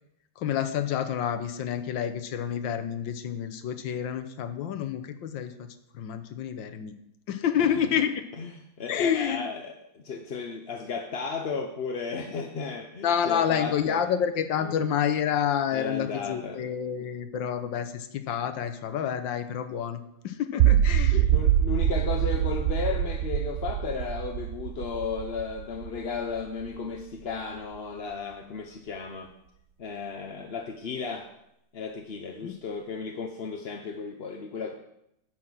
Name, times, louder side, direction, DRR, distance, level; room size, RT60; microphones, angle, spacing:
voice 1, 0.4-5.7 5.9-6.9 7.3-8.2 8.9-9.4 13.0-21.2 32.4-32.6, left 8 dB, 80° left, 9 dB, 1.6 m, -28 dB
voice 2, 8.8-14.0 14.6-14.9 15.7-16.6 17.0-17.1 21.1-29.3 29.8-31.3 31.7-34.7, left 5 dB, 50° left, 4 dB, 0.7 m, -34 dB
sound 1, 20.6-26.7, right 11 dB, 70° right, 0.8 m, -25 dB
11.0 x 6.1 x 7.4 m, 0.79 s
omnidirectional pair, 2.0 m